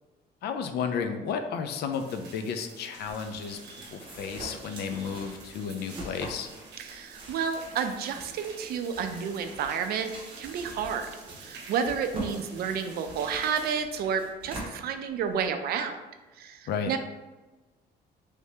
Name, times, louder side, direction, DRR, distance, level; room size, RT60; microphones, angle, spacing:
voice 1, 0.4-3.6 3.9-6.5 16.7-16.9, left 6 dB, 75° left, 7 dB, 0.4 m, -32 dB
sound 1, 1.9-13.8, right 4 dB, 90° right, 0.7 m, -48 dB
sound 2, 3.0-15.5, right 1 dB, 30° right, 1.0 m, -44 dB
voice 2, 6.8-10.1 10.4-11.1 11.4-16.0 16.4-16.6 16.9-17.0, right 7 dB, 65° right, 7 dB, 0.4 m, -30 dB
3.3 x 2.7 x 3.2 m, 1.1 s
cardioid pair, 165°, 17 cm